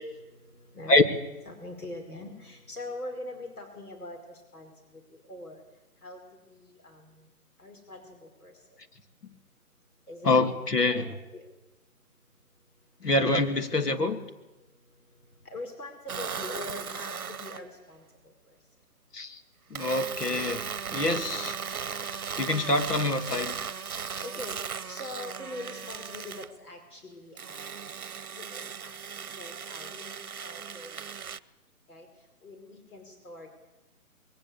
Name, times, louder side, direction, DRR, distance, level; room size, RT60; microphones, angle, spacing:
voice 1, 0.3-1.0 1.5-5.6 6.0-6.2 6.5-7.3 7.6-8.5 10.1-10.3 10.9-11.0 11.3-11.5 15.0-18.6 21.9-22.6 23.9-27.9 28.3-29.0 29.4-31.2 31.9-32.1 32.4-33.6, left 2 dB, 70° left, 3 dB, 5.2 m, -43 dB
voice 2, 10.2-11.1 13.0-14.2 19.1-19.4 19.7-20.6 20.9-21.5 22.4-23.7, left 2 dB, 85° left, 7 dB, 2.9 m, -25 dB
sound 1, 16.1-17.6 19.7-26.5 27.4-31.4, right 6 dB, 65° right, 1.0 m, -37 dB
21.5 x 17.5 x 8.5 m, 1.0 s
hypercardioid pair, 175°, 46 cm